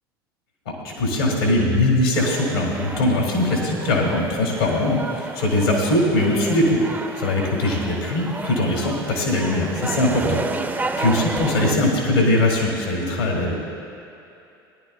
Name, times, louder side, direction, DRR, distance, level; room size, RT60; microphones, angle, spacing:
voice 1, 0.8-6.8 7.2-10.2 10.7-13.6, left 1 dB, 80° left, -2 dB, 2.3 m, -21 dB
sound 1, 2.1-11.7, right 3 dB, 15° right, 0.6 m, -31 dB
19.0 x 11.0 x 2.3 m, 2.7 s
figure-of-eight pair, 75°, 12 cm